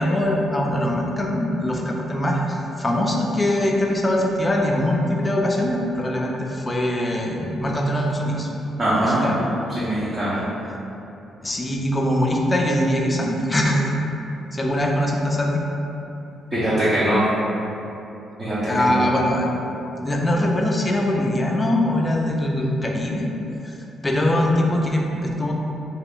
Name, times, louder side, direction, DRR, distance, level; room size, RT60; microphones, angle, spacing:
voice 1, 0.0-8.5 9.0-9.4 11.4-13.9 14.5-15.6 18.6-19.5 20.0-23.3 23.6-23.7 24.0-25.5, left 1 dB, 15° left, -1 dB, 0.3 m, -22 dB
voice 2, 8.8-9.4 9.8-10.4 16.5-17.2 18.4-19.0, right 1 dB, 30° right, -11 dB, 0.6 m, -22 dB
3.3 x 2.4 x 3.5 m, 2.9 s
cardioid pair, 145°, 0 cm